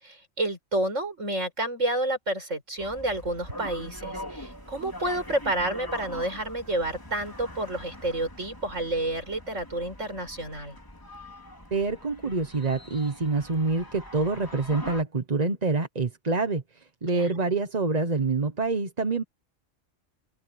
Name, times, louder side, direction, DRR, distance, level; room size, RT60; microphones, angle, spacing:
voice 1, 0.0-10.8 17.1-17.3, right 1 dB, 70° right, 7.2 m, -30 dB
sound 1, 2.8-15.0, left 1 dB, 15° left, 3.5 m, -43 dB
voice 2, 11.7-19.2, right 3 dB, 35° right, 1.2 m, -26 dB
open air
omnidirectional pair, 1.3 m